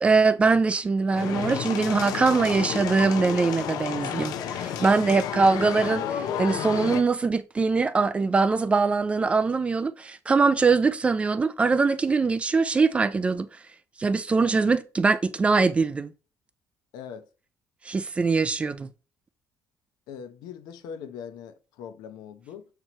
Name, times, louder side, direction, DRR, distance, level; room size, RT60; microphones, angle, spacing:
voice 1, 0.0-13.5 14.0-16.1 17.9-18.9, right 4 dB, 15° right, 0.3 m, -22 dB
sound 1, 1.1-7.0, left 9 dB, 65° left, 0.7 m, -31 dB
voice 2, 4.6-5.0 16.9-17.3 20.1-22.7, left 7 dB, 80° left, 1.0 m, -41 dB
7.6 x 4.6 x 3.1 m
cardioid pair, 170°, 7 cm